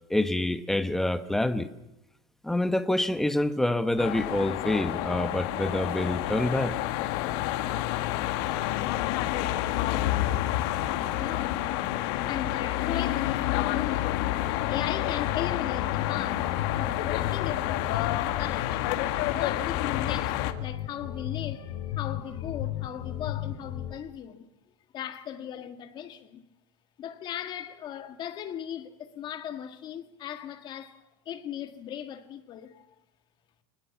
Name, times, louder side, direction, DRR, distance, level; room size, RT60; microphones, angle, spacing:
voice 1, 0.1-1.7 2.4-6.7, left 1 dB, ahead, 1.0 m, -27 dB
sound 1, 4.0-20.5, left 14 dB, 60° left, 1.7 m, -29 dB
voice 2, 11.1-11.6 12.1-14.2 14.7-19.0 19.3-24.5 24.9-26.5 27.0-32.9, left 10 dB, 30° left, 1.8 m, -38 dB
sound 2, 13.2-23.9, left 12 dB, 90° left, 4.0 m, -36 dB
24.5 x 19.5 x 7.2 m
supercardioid pair, 165°, 15 cm